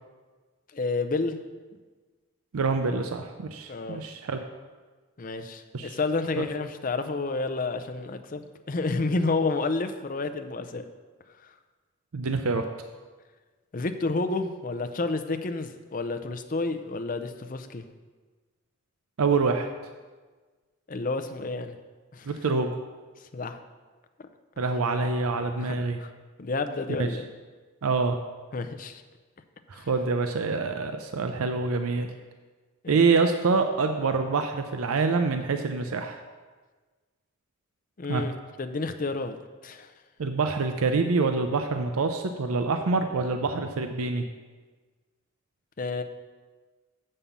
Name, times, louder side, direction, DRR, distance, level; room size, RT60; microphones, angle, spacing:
voice 1, 0.7-1.4 3.7-4.0 5.2-10.8 11.4-11.5 13.7-17.8 20.9-21.8 22.1-22.3 23.2-23.6 24.2-24.3 24.6-24.7 25.6-26.1 26.4-27.3 28.5-29.0 29.7-29.9 32.8-33.0 38.0-39.4 39.6-39.9 45.8-46.0, left 3 dB, 40° left, 8 dB, 0.5 m, -30 dB
voice 2, 2.5-4.4 5.7-6.0 6.4-6.5 12.1-12.6 19.2-19.7 22.3-22.7 24.6-26.0 27.0-27.1 27.8-28.2 29.7-32.1 32.9-36.2 38.1-38.2 40.2-44.2, right 4 dB, 80° right, 6 dB, 0.5 m, -26 dB
6.9 x 5.5 x 7.2 m, 1.4 s
head